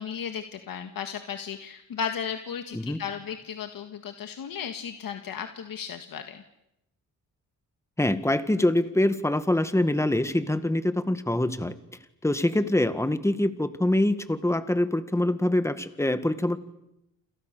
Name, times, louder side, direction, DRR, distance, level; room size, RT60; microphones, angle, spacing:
voice 1, 0.0-6.4, left 7 dB, 80° left, 7 dB, 1.8 m, -35 dB
voice 2, 8.0-11.7 12.2-16.6, left 1 dB, 10° left, 11 dB, 1.8 m, -24 dB
29.5 x 27.5 x 6.8 m, 0.86 s
cardioid pair, 105°, 34 cm